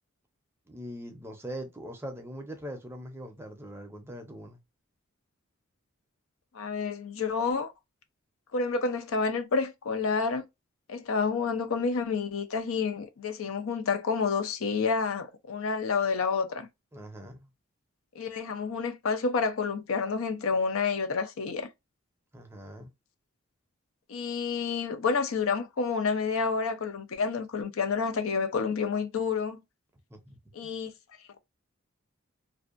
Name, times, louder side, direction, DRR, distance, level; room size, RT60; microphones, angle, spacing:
voice 1, 0.7-4.6 16.9-17.5 22.3-22.9 30.1-30.4, equal, 10° right, 0.5 m, -41 dB
voice 2, 6.5-7.7 8.5-10.4 10.9-16.7 18.2-21.7 24.1-29.6 30.5-30.9, left 5 dB, 80° left, 0.5 m, -29 dB
2.6 x 2.1 x 2.4 m
head